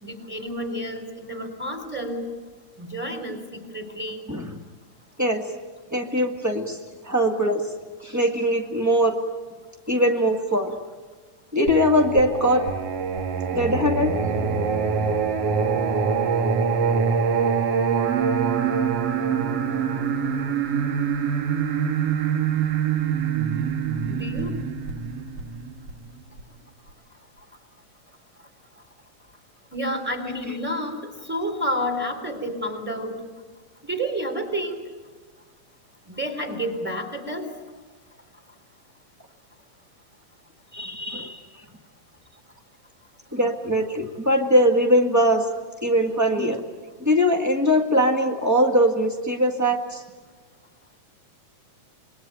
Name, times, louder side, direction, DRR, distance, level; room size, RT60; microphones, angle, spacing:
voice 1, 0.0-2.3 2.8-4.2 24.1-24.6 29.7-33.2 33.8-34.8 36.1-37.5, equal, 5° right, 6 dB, 3.2 m, -30 dB
voice 2, 5.9-6.8 7.0-7.6 8.0-9.1 9.9-10.8 11.5-12.6 13.5-14.1 40.7-41.4 43.3-45.4 45.8-46.6 47.0-50.0, equal, 20° right, 2 dB, 0.4 m, -21 dB
Singing, 11.7-26.4, right 6 dB, 55° right, 2.2 m, -24 dB
26.5 x 22.0 x 9.1 m, 1.3 s
omnidirectional pair, 3.8 m